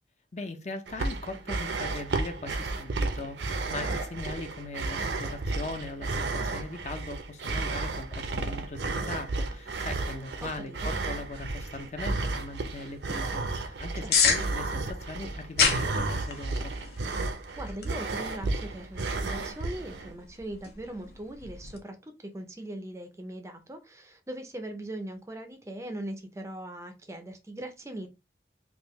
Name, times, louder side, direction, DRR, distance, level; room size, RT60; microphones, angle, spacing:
voice 1, 0.3-16.7, left 2 dB, 40° left, 0.6 m, -40 dB
sound 1, 0.9-20.1, right 3 dB, 85° right, 0.6 m, -33 dB
voice 2, 10.4-10.9 14.0-14.1 17.6-28.1, right 1 dB, 15° right, 0.5 m, -40 dB
sound 2, 11.2-21.8, left 5 dB, 65° left, 0.8 m, -33 dB
3.5 x 2.6 x 3.0 m
head